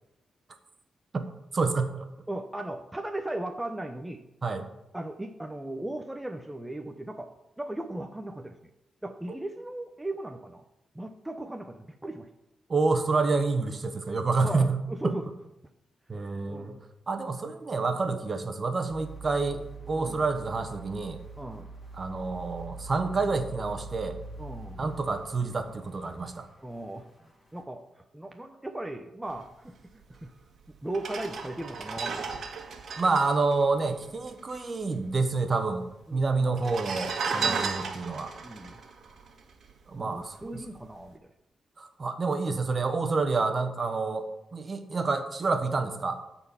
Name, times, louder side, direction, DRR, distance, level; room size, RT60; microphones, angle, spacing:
voice 1, 1.5-2.1 4.4-4.7 12.7-14.8 15.0-15.1 16.1-16.7 17.1-19.6 19.9-21.2 22.0-24.2 24.8-26.5 33.0-35.8 36.1-38.3 39.9-40.6 41.8-44.2 44.5-46.2, right 3 dB, 35° right, 7 dB, 1.2 m, -28 dB
voice 2, 2.3-4.2 4.9-7.3 7.6-8.6 9.0-10.6 10.9-12.3 14.4-15.3 16.5-16.8 19.9-20.2 21.4-21.7 24.4-24.8 26.6-30.3 30.7-32.7 36.1-36.5 37.2-37.7 38.4-38.8 40.0-41.3, right 1 dB, 10° right, 4 dB, 0.7 m, -37 dB
sound 1, 18.9-27.1 27.6-27.7, right 3 dB, 15° left, 3.4 m, -44 dB
sound 2, 30.2-30.3 30.9-34.6 34.8-34.9 35.1-35.8 36.5-40.0 40.4-40.6, right 5 dB, 65° right, 1.6 m, -34 dB
13.0 x 4.4 x 7.1 m, 0.90 s
cardioid pair, 100°, 0 cm